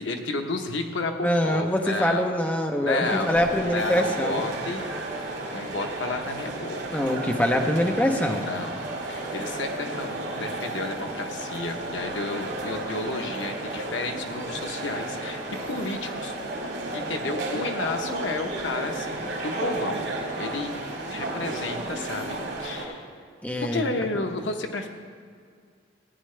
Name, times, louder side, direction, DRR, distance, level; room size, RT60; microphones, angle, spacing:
voice 1, 0.0-2.3 2.8-4.9 5.2-7.0 8.4-8.8 9.1-15.4 15.7-16.3 16.7-20.0 20.3-20.7 21.1-23.1 23.6-24.9, left 2 dB, 75° left, 4 dB, 0.9 m, -32 dB
voice 2, 1.2-4.4 6.9-8.5 23.4-23.8, left 1 dB, 10° left, 3 dB, 0.7 m, -24 dB
sound 1, 3.0-22.9, right 2 dB, 90° right, 2.1 m, -33 dB
15.5 x 9.4 x 3.3 m, 2.1 s
head